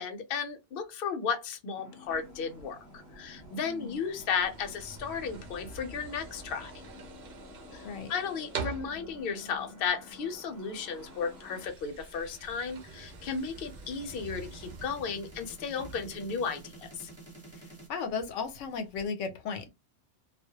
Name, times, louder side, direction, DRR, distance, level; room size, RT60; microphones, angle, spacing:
voice 1, 0.0-6.7 7.7-17.1, left 6 dB, 60° left, 0.7 m, -34 dB
sound 1, 1.7-11.7, left 1 dB, 20° left, 0.6 m, -51 dB
sound 2, 2.0-19.1, right 5 dB, 50° right, 0.6 m, -47 dB
voice 2, 3.7-4.0 7.8-8.1 17.6-19.7, left 5 dB, 85° left, 0.9 m, -35 dB
sound 3, 9.8-17.9, right 3 dB, 15° right, 0.8 m, -52 dB
2.1 x 2.0 x 2.8 m
omnidirectional pair, 1.2 m